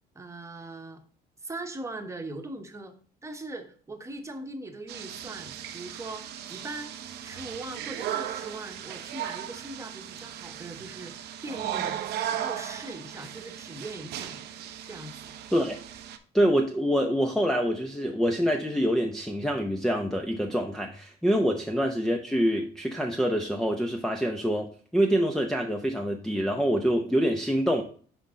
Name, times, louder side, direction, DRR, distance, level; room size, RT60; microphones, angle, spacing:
voice 1, 0.1-1.0 1.4-2.9 3.2-6.9 7.2-14.4 14.9-15.3, right 2 dB, 15° right, 5 dB, 1.2 m, -40 dB
sound 1, 4.9-16.2, right 10 dB, 80° right, 0.8 m, -37 dB
voice 2, 16.3-27.8, equal, 5° left, 3 dB, 0.7 m, -26 dB
6.0 x 5.5 x 3.6 m, 0.43 s
cardioid pair, 110°, 17 cm